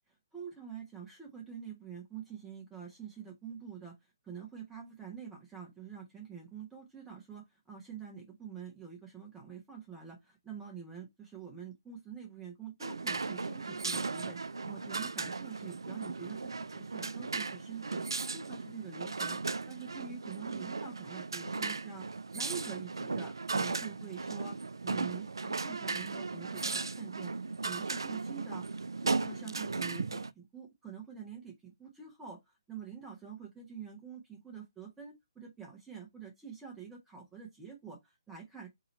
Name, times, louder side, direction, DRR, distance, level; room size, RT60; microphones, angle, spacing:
voice 1, 0.3-3.9 4.2-24.6 24.8-27.3 27.6-28.7 29.0-32.4 32.7-38.7, right 7 dB, 10° right, 1.2 m, -46 dB
sound 1, 12.8-30.3, right 4 dB, 85° right, 0.3 m, -36 dB
3.8 x 2.8 x 4.2 m
figure-of-eight pair, 140°, 2 cm